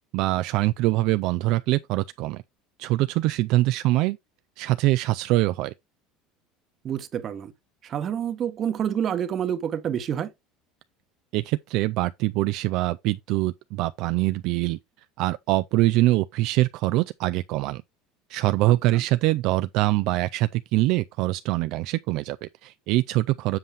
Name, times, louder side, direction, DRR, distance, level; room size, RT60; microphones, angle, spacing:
voice 1, 0.1-2.4 2.8-4.2 4.6-5.7 11.3-14.8 15.2-17.8 18.3-23.6, right 18 dB, 65° right, 0.3 m, -24 dB
voice 2, 6.8-7.5 7.8-10.3 18.7-19.0, right 9 dB, 40° right, 1.0 m, -28 dB
7.6 x 5.5 x 3.3 m
supercardioid pair, 115°, 0 cm